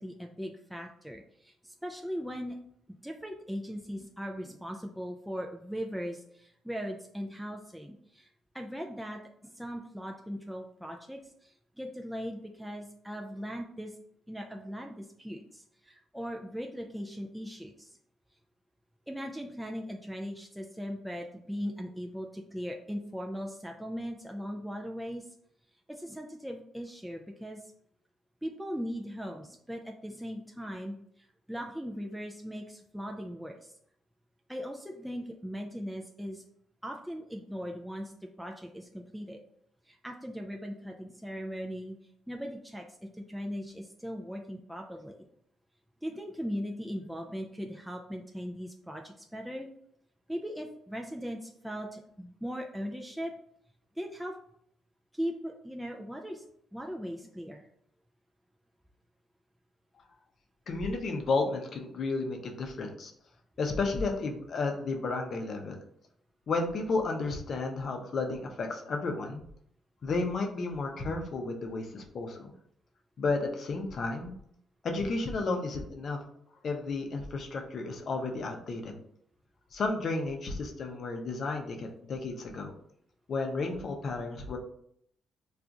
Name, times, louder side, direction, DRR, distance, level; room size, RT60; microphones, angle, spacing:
voice 1, 0.0-2.6 3.0-8.3 8.5-13.9 14.3-17.9 19.1-25.3 25.9-27.6 28.4-33.7 34.5-36.4 36.8-39.4 39.9-42.0 42.3-42.8 43.1-45.2 46.0-49.7 50.3-53.3 54.0-54.3 55.1-56.4 56.7-57.7, equal, ahead, 1 dB, 0.3 m, -39 dB
voice 2, 60.7-63.1 63.6-65.8 66.5-69.4 70.0-72.5 73.2-74.3 74.8-76.2 76.6-79.0 79.7-82.7 83.3-84.6, left 3 dB, 55° left, 3 dB, 0.6 m, -32 dB
2.4 x 2.4 x 3.9 m, 0.69 s
cardioid pair, 90°, 0 cm